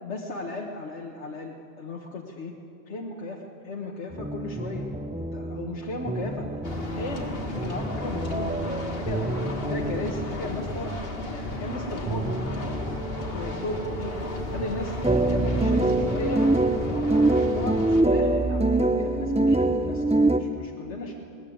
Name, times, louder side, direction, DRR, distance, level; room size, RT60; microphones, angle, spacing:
voice 1, 0.0-2.5 2.9-4.9 5.2-6.5 6.8-9.3 9.7-11.0 11.3-12.3 13.3-14.1 14.5-16.5 16.8-17.1 17.5-21.1, left 2 dB, 70° left, -1 dB, 1.7 m, -36 dB
sound 1, 4.1-20.4, right 2 dB, 10° right, 0.4 m, -26 dB
sound 2, 6.6-18.0, left 2 dB, 55° left, 2.0 m, -34 dB
20.5 x 19.5 x 8.6 m, 2.8 s
omnidirectional pair, 1.2 m